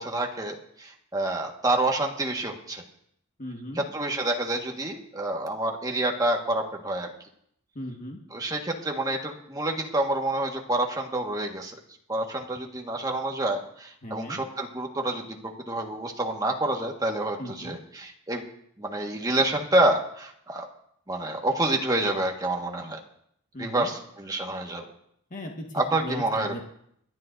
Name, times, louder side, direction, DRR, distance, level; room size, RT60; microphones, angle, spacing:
voice 1, 0.0-2.8 3.7-7.1 8.3-11.7 12.1-18.4 18.8-20.6 21.1-23.0 23.6-24.8 25.7-26.6, right 2 dB, 20° right, 1 dB, 1.6 m, -28 dB
voice 2, 3.4-3.8 7.7-8.2 14.0-14.4 17.4-17.8 23.5-23.9 25.3-26.6, left 1 dB, 40° left, 1 dB, 1.6 m, -37 dB
27.5 x 10.5 x 2.6 m, 0.70 s
head